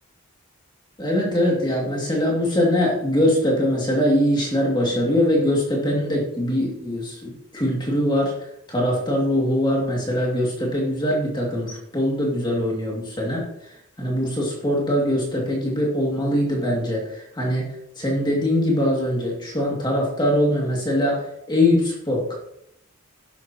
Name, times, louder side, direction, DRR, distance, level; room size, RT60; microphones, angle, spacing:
voice 1, 1.0-8.4 8.7-13.4 14.0-17.7 18.0-22.3, left 1 dB, 20° left, -2 dB, 2.5 m, -22 dB
11.5 x 11.5 x 3.0 m, 0.77 s
head